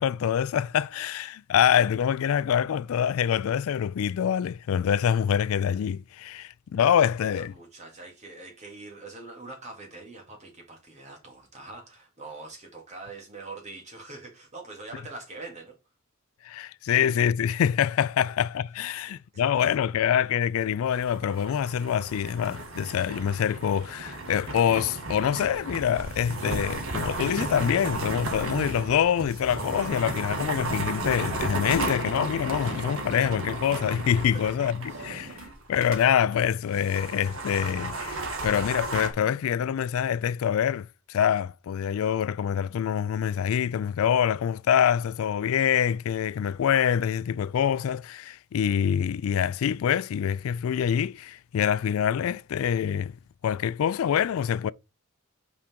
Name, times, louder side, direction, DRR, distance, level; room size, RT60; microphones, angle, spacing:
voice 1, 0.0-7.5 16.4-53.1 53.4-54.7, left 8 dB, 80° left, 0.3 m, -25 dB
voice 2, 7.2-15.7 18.9-19.8 34.3-34.5 34.9-35.1, right 3 dB, 35° right, 2.4 m, -44 dB
sound 1, 20.8-36.0 36.3-36.4 36.7-39.1, right 2 dB, 75° right, 1.7 m, -34 dB
5.8 x 5.0 x 4.5 m
head